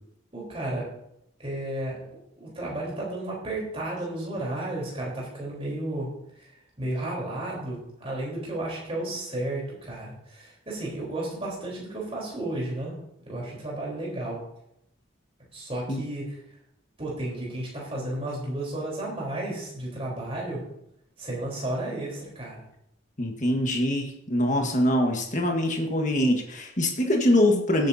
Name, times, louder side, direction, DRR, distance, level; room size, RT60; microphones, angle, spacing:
voice 1, 0.3-0.8 1.4-2.0 2.4-6.1 6.8-12.9 13.3-14.4 15.5-16.4 17.0-20.6 21.2-22.6 24.5-24.7, right 1 dB, 25° right, -3 dB, 3.9 m, -33 dB
voice 2, 23.2-27.9, left 1 dB, 35° left, 2 dB, 1.5 m, -24 dB
16.0 x 9.0 x 2.8 m, 0.79 s
head